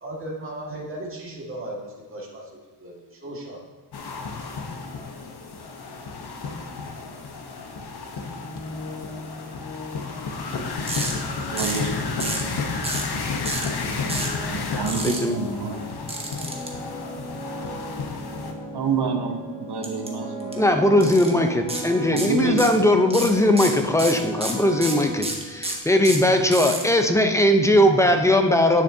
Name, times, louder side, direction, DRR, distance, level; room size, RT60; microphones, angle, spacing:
voice 1, 0.0-3.6, right 1 dB, 30° right, -4 dB, 1.8 m, -36 dB
sound 1, 3.9-18.5, left 4 dB, 60° left, 1.0 m, -32 dB
sound 2, 8.4-26.0, equal, 90° left, 1.8 m, -38 dB
sound 3, 10.9-11.1 11.6-11.9 12.2-12.5 12.8-13.1 13.4-13.7 14.1-14.3 14.9-15.2 16.1-16.7 19.8-20.1 20.4-20.5 21.0-21.3 21.7-21.8 22.2-22.8 23.1-26.8, right 2 dB, 15° right, 1.1 m, -29 dB
voice 2, 11.5-12.7 14.5-15.9 18.7-20.7 22.1-22.7, right 5 dB, 65° right, 4 dB, 0.9 m, -28 dB
voice 3, 15.0-15.4 20.6-28.8, left 1 dB, 5° left, 5 dB, 0.6 m, -19 dB
9.4 x 7.1 x 2.7 m, 1.3 s
wide cardioid pair, 120°, 44 cm